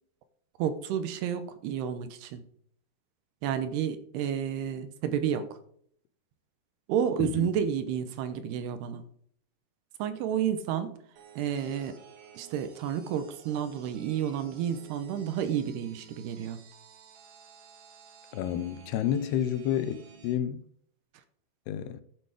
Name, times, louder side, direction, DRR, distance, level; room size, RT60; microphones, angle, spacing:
voice 1, 0.6-2.4 3.4-5.6 6.9-9.0 10.0-11.0 11.4-12.0 12.3-16.6, right 9 dB, 85° right, 3.1 m, -31 dB
sound 1, 11.2-20.3, right 6 dB, 70° right, 3.2 m, -53 dB
voice 2, 18.3-20.7 21.7-22.0, left 10 dB, 85° left, 2.8 m, -30 dB
12.5 x 6.7 x 5.0 m
omnidirectional pair, 4.6 m